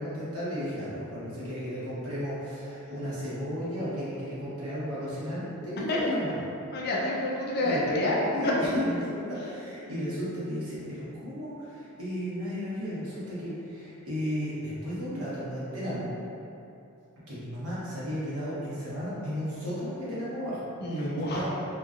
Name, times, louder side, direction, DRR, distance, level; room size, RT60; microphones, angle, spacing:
voice 1, 0.0-6.3 7.6-7.8 8.3-16.1 17.3-20.6 20.9-21.5, equal, 80° right, -10 dB, 1.0 m, -34 dB
voice 2, 6.7-8.2 8.4-8.5 20.8-21.4, left 2 dB, 45° left, -4 dB, 0.5 m, -28 dB
3.0 x 2.3 x 2.4 m, 2.8 s
head